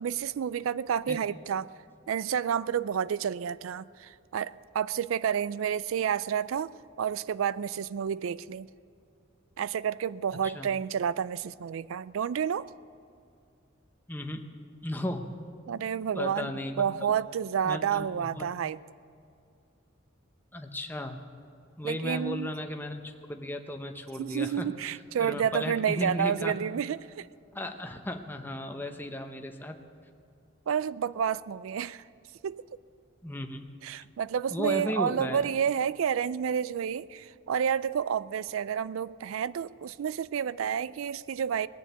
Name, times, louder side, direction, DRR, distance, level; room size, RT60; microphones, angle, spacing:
voice 1, 0.0-1.7 2.1-6.7 7.0-8.7 9.6-12.7 15.7-16.5 16.8-18.8 21.8-22.5 24.2-27.3 30.7-32.0 32.4-32.6 33.8-41.7, right 8 dB, 90° right, 19 dB, 0.4 m, -30 dB
voice 2, 14.1-14.4 14.8-15.4 16.1-17.2 17.6-18.5 20.5-21.2 21.8-26.5 27.5-29.8 33.2-33.7 34.5-35.5, left 1 dB, 10° left, 5 dB, 0.7 m, -35 dB
19.5 x 7.2 x 8.1 m, 2.4 s
head